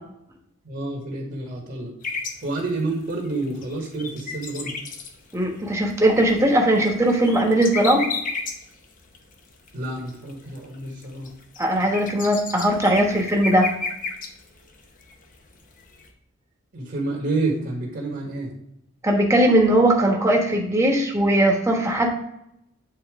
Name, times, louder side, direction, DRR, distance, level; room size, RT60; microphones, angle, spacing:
voice 1, 0.6-1.9 2.4-4.8 9.7-11.3 16.7-18.5, right 2 dB, 50° right, -1 dB, 1.4 m, -29 dB
sound 1, 2.0-16.1, left 4 dB, 40° left, 0.8 m, -33 dB
voice 2, 5.3-8.0 11.6-13.7 19.0-22.1, right 1 dB, 15° right, 0 dB, 1.2 m, -19 dB
8.8 x 4.2 x 3.6 m, 0.80 s
head